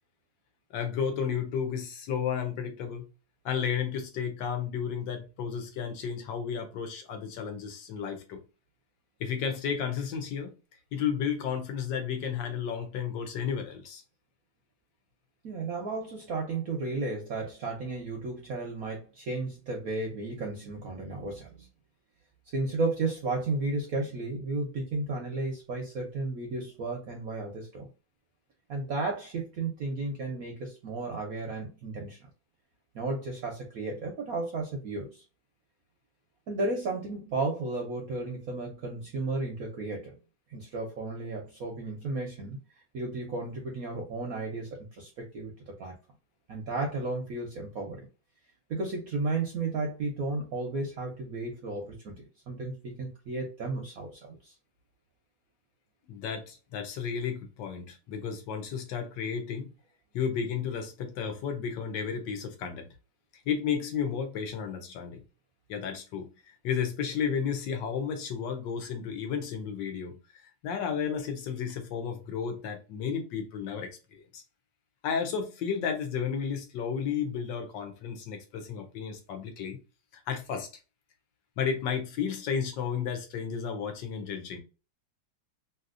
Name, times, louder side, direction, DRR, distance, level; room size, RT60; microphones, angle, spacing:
voice 1, 0.7-3.1 3.4-8.4 9.2-10.5 10.9-14.0 56.1-59.7 60.1-62.9 63.5-65.2 65.7-66.3 66.6-70.2 70.6-74.4 75.0-79.8 80.1-80.7 81.6-84.6, left 7 dB, 70° left, 1.4 m, -32 dB
voice 2, 15.4-21.7 22.5-27.9 28.7-32.3 32.9-35.2 36.5-40.2 40.5-42.6 42.9-45.9 46.5-48.1 48.7-54.5, right 3 dB, 65° right, 0.9 m, -33 dB
3.3 x 2.8 x 2.4 m
omnidirectional pair, 2.2 m